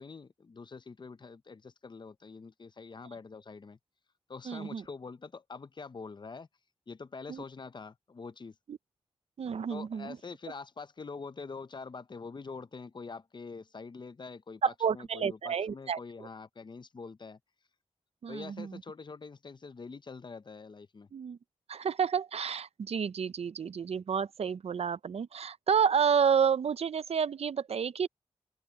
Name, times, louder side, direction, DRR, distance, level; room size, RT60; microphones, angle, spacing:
voice 1, 0.0-3.8 4.3-6.5 6.9-8.6 9.7-14.6 14.9-17.4 18.3-21.1, left 4 dB, 50° left, 0.7 m, -45 dB
voice 2, 4.5-4.8 7.3-7.4 8.7-8.8 9.4-10.2 14.6-16.3 18.2-18.8 21.1-21.4 21.7-28.1, right 7 dB, 85° right, 0.5 m, -30 dB
open air
wide cardioid pair, 90°, 10 cm